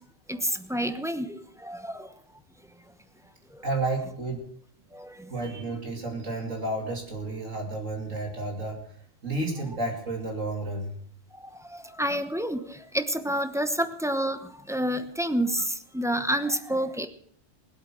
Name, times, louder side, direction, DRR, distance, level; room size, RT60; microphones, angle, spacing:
voice 1, 0.7-2.1 4.9-5.1 11.6-12.6 12.9-14.4 14.7-15.7 15.9-17.1, right 1 dB, 5° right, 8 dB, 0.9 m, -28 dB
voice 2, 3.6-4.5 5.3-8.8 9.2-10.9, right 2 dB, 70° right, 1 dB, 3.1 m, -31 dB
20.0 x 8.2 x 6.1 m, 0.62 s
omnidirectional pair, 1.4 m